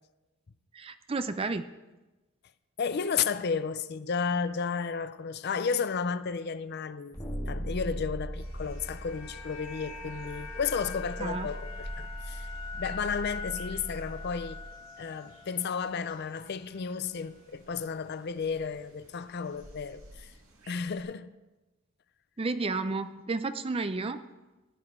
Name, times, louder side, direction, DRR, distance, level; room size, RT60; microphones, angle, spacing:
voice 1, 0.7-1.7 11.2-11.5 22.4-24.2, right 3 dB, 25° right, 0.4 m, -32 dB
voice 2, 2.8-7.2 7.5-14.6 15.0-20.3 20.7-21.3, left 6 dB, 50° left, 0.4 m, -33 dB
sound 1, 7.1-14.6, equal, 20° left, 1.9 m, -40 dB
sound 2, 8.2-16.5 16.7-16.9, left 5 dB, 75° left, 2.1 m, -44 dB
sound 3, 8.3-21.0, right 1 dB, 65° right, 1.9 m, -54 dB
16.0 x 9.9 x 3.7 m
head